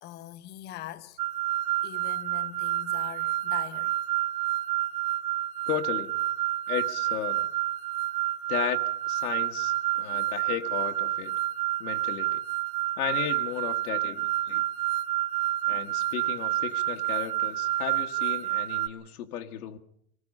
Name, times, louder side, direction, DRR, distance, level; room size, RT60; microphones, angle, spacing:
voice 1, 0.0-1.2 1.8-3.9, left 13 dB, 20° left, 1.0 m, -42 dB
sound 1, 1.2-18.9, right 15 dB, 90° right, 0.8 m, -29 dB
voice 2, 5.7-6.1 6.7-7.5 8.5-8.8 9.1-11.3 11.8-12.4 13.0-14.6 15.7-19.8, left 11 dB, 75° left, 1.7 m, -34 dB
25.0 x 19.5 x 5.4 m
supercardioid pair, 165°, 44 cm